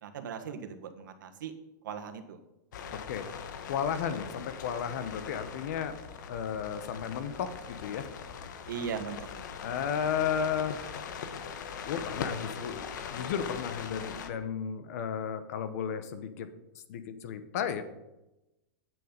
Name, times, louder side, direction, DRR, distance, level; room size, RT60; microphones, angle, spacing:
voice 1, 0.0-1.5 1.8-2.4 8.7-9.6, right 7 dB, 85° right, 7 dB, 1.5 m, -39 dB
sound 1, 2.7-14.3, left 7 dB, 70° left, 1.2 m, -41 dB
voice 2, 2.9-3.3 3.7-6.0 6.3-8.1 9.6-10.8 11.9-16.5 16.9-17.8, left 7 dB, 55° left, 11 dB, 1.1 m, -33 dB
9.8 x 7.6 x 5.3 m, 0.95 s
supercardioid pair, 175°, 10 cm